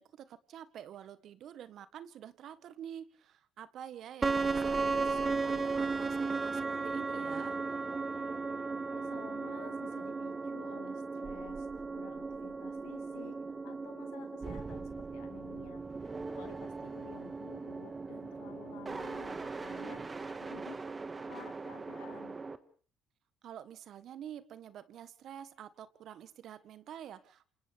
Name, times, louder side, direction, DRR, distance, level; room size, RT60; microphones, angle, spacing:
voice 1, 0.0-7.6 19.7-20.1 23.4-27.5, right 9 dB, 65° right, 13 dB, 1.5 m, -48 dB
sound 1, 4.2-22.6, right 4 dB, 30° right, 1.8 m, -36 dB
voice 2, 8.9-11.7 11.9-13.4 13.6-20.8 21.2-22.4, left 13 dB, 85° left, 7 dB, 2.5 m, -53 dB
28.0 x 27.5 x 3.6 m, 0.43 s
supercardioid pair, 70°, 0 cm